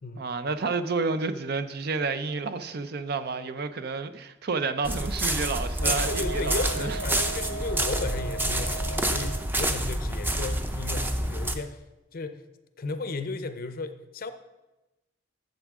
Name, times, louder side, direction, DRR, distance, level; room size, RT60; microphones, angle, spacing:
voice 1, 0.2-7.0, right 4 dB, 55° right, 11 dB, 0.5 m, -30 dB
sound 1, 4.8-11.5, right 1 dB, 10° right, 0.6 m, -28 dB
Wind instrument woodwind instrument, 5.8-9.5, right 3 dB, 90° left, 0.6 m, -37 dB
voice 2, 5.8-11.8 12.1-12.4 12.8-14.3, left 3 dB, 50° left, 10 dB, 0.6 m, -34 dB
11.5 x 7.2 x 3.6 m, 1.0 s
head